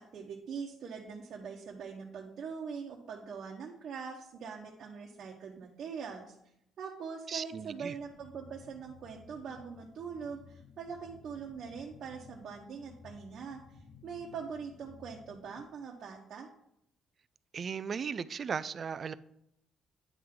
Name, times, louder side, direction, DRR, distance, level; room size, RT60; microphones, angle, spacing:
voice 1, 0.0-6.3 6.8-16.5, right 6 dB, 65° right, 1.1 m, -43 dB
voice 2, 7.3-7.9 17.5-19.1, right 6 dB, 50° right, 0.4 m, -36 dB
sound 1, 7.9-15.6, left 5 dB, 80° left, 0.9 m, -56 dB
9.2 x 3.7 x 6.0 m
cardioid pair, 90°, 0 cm